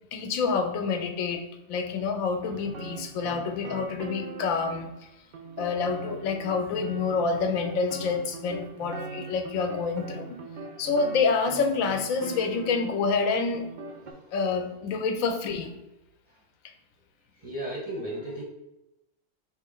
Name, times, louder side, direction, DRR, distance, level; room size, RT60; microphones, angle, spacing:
voice 1, 0.1-1.4 1.7-4.9 5.6-10.4 10.8-13.7 14.3-15.7, left 4 dB, 80° left, 6 dB, 1.0 m, -27 dB
sound 1, 2.4-5.0 5.3-13.1 13.5-14.1, right 3 dB, 85° right, 0.4 m, -41 dB
voice 2, 17.4-18.4, right 1 dB, 40° right, -3 dB, 0.6 m, -36 dB
4.3 x 2.9 x 3.8 m, 0.91 s
omnidirectional pair, 1.4 m